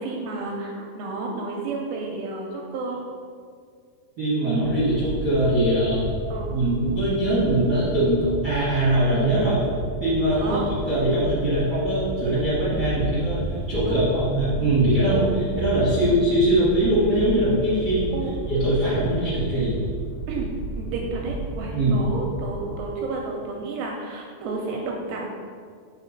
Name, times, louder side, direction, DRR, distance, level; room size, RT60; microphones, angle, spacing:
voice 1, 0.0-3.0 6.3-6.5 10.3-10.6 13.8-14.1 15.1-15.3 18.1-18.4 20.3-20.5 20.8-25.3, right 3 dB, 80° right, 0 dB, 2.2 m, -31 dB
voice 2, 4.2-6.0 6.5-9.7 10.0-18.1 18.5-19.7 21.7-22.0, right 1 dB, 50° right, -12 dB, 1.2 m, -22 dB
sound 1, 4.6-22.9, right 3 dB, 90° left, 2.9 m, -32 dB
5.8 x 3.8 x 5.2 m, 2.1 s
omnidirectional pair, 4.7 m